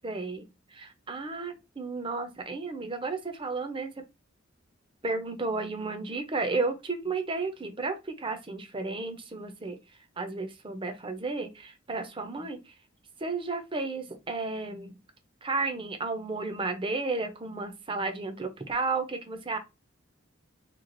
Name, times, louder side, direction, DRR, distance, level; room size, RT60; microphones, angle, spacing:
voice 1, 0.0-3.9 5.0-9.8 10.2-12.6 13.2-15.0 15.4-19.6, right 3 dB, 25° right, 0.6 m, -33 dB
3.1 x 2.4 x 3.8 m
head